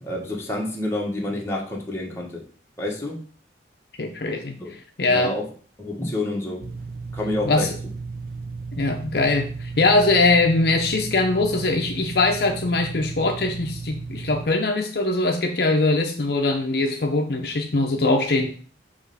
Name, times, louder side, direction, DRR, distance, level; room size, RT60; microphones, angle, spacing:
voice 1, 0.0-2.4 2.8-3.2 4.6-4.7 5.1-5.5 5.8-6.7 7.1-7.7, left 1 dB, 15° left, -2 dB, 1.3 m, -28 dB
voice 2, 4.0-4.5 5.0-5.3 7.5-7.7 8.8-18.6, left 2 dB, 55° left, 3 dB, 0.6 m, -21 dB
sound 1, 6.6-14.5, right 4 dB, 55° right, 0.5 m, -35 dB
6.1 x 3.2 x 5.5 m, 0.42 s
head